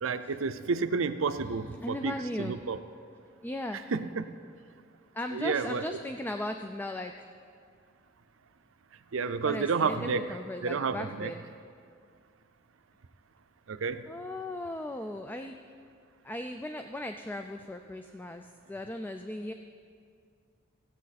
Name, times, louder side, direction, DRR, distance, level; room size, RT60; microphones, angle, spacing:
voice 1, 0.0-2.8 3.9-4.3 5.3-6.0 9.1-10.4 10.6-11.3 13.7-14.1, right 5 dB, 90° right, 10 dB, 0.5 m, -30 dB
voice 2, 1.8-2.6 3.4-3.8 5.1-7.3 9.4-11.4 14.1-15.5 16.2-19.5, left 1 dB, 10° left, 6 dB, 0.3 m, -37 dB
16.5 x 8.4 x 4.1 m, 2.3 s
head